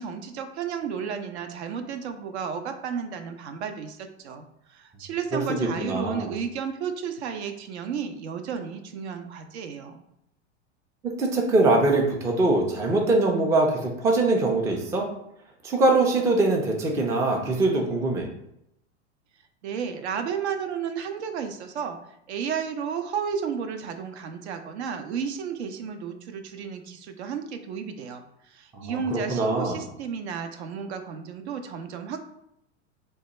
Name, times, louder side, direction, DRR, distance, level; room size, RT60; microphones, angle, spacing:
voice 1, 0.0-10.0 19.6-22.0 22.3-28.2 28.5-32.2, right 7 dB, 65° right, 7 dB, 0.6 m, -33 dB
voice 2, 5.3-6.3 11.2-15.1 15.6-18.3 28.7-29.8, right 2 dB, 10° right, 1 dB, 0.4 m, -23 dB
2.7 x 2.2 x 4.0 m, 0.77 s
hypercardioid pair, 95°, 36 cm